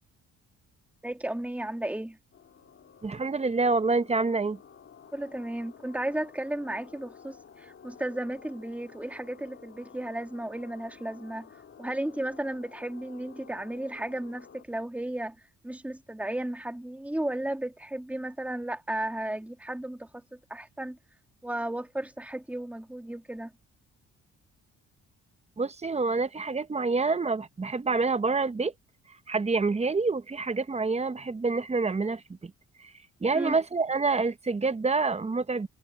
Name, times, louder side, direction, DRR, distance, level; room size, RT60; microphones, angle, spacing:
voice 1, 1.0-2.2 5.1-11.5 11.8-15.4 15.6-21.0 21.4-23.5 33.3-33.5, right 1 dB, 5° right, 2.5 m, -34 dB
sound 1, 2.3-14.6, left 7 dB, 45° left, 2.7 m, -52 dB
voice 2, 3.0-4.6 25.6-28.7 29.3-32.5 32.8-32.9 33.2-35.7, right 4 dB, 20° right, 1.0 m, -27 dB
cardioid pair, 90°, 30 cm